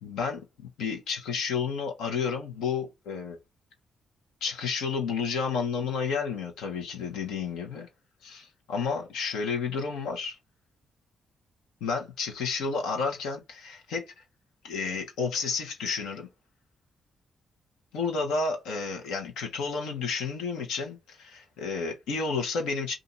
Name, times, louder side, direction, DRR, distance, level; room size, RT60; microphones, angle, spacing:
voice 1, 0.0-3.4 4.4-7.9 8.2-10.4 11.8-14.0 14.6-16.3 17.9-22.9, left 5 dB, 85° left, 1.2 m, -31 dB
2.7 x 2.6 x 4.0 m
supercardioid pair, 55°, 0 cm